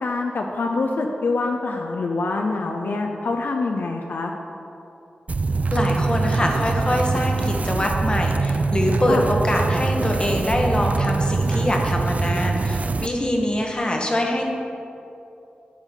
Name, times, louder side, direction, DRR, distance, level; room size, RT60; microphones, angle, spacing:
voice 1, 0.0-4.3 9.1-9.3, left 3 dB, 75° left, 2 dB, 0.7 m, -25 dB
sound 1, 5.3-13.1, right 3 dB, 45° right, 0.4 m, -23 dB
voice 2, 5.7-14.4, left 1 dB, 30° left, 1 dB, 1.5 m, -24 dB
12.0 x 4.1 x 7.1 m, 2.7 s
cardioid pair, 65°, 3 cm